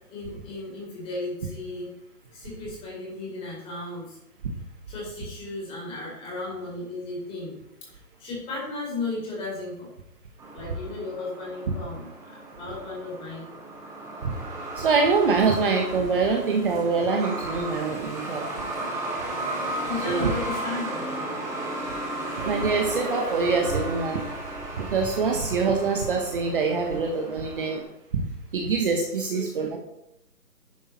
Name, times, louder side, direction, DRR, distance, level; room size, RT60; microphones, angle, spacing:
voice 1, 0.1-1.9 2.3-4.2 4.9-7.5 7.9-9.9 10.5-13.6 19.9-21.4 29.3-29.4, left 3 dB, 10° left, -4 dB, 4.5 m, -35 dB
Truck, 10.4-27.8, right 1 dB, 5° right, 1.6 m, -35 dB
voice 2, 14.8-18.5 20.0-20.3 22.5-24.2 24.8-27.8 28.1-28.2 28.5-29.8, right 4 dB, 35° right, 1 dB, 1.4 m, -24 dB
10.5 x 9.1 x 4.3 m, 0.81 s
figure-of-eight pair, 155°, 47 cm